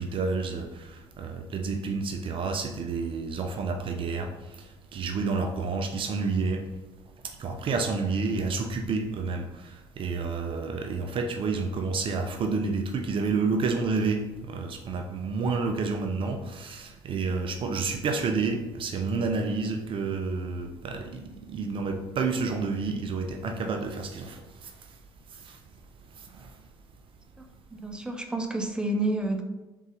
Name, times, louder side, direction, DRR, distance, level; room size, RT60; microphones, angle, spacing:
voice 1, 0.0-4.3 4.9-6.6 7.4-21.2 21.5-24.4 25.5-25.6 26.4-26.5, right 4 dB, 45° right, 5 dB, 0.5 m, -29 dB
voice 2, 27.7-29.4, right 2 dB, 5° right, 4 dB, 0.7 m, -30 dB
3.8 x 3.7 x 3.1 m, 1.1 s
hypercardioid pair, 55°, 12 cm